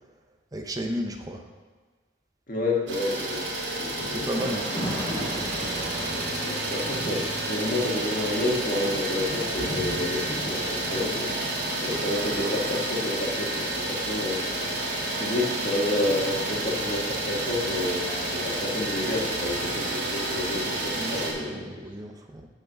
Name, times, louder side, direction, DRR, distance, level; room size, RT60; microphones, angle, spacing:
voice 1, 0.5-1.5 4.0-6.5 11.9-12.5 20.9-22.5, equal, 20° right, 3 dB, 0.6 m, -35 dB
voice 2, 2.5-3.5 3.8-4.3 6.4-11.4 11.8-14.8 15.1-21.8, left 2 dB, 45° left, -2 dB, 1.6 m, -30 dB
Idling, 2.9-21.3, right 1 dB, 75° right, 2.3 m, -30 dB
Thunder / Rain, 4.3-20.3, equal, 20° left, 1.8 m, -40 dB
9.0 x 4.7 x 6.0 m, 1.5 s
head